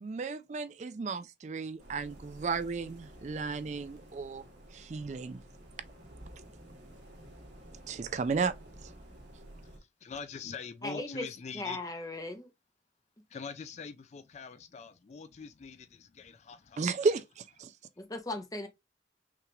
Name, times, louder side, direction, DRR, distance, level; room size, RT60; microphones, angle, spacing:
voice 1, 0.0-4.4 4.7-5.4 7.9-8.5 8.8-8.9 16.8-17.7, right 4 dB, 40° right, 0.3 m, -33 dB
sound 1, 1.8-9.8, right 1 dB, 75° right, 2.2 m, -52 dB
voice 2, 10.0-11.8 13.3-16.8, left 5 dB, 40° left, 0.3 m, -43 dB
voice 3, 10.8-11.3 11.5-12.5 18.0-18.7, left 2 dB, 20° left, 0.7 m, -37 dB
5.9 x 2.4 x 3.0 m
head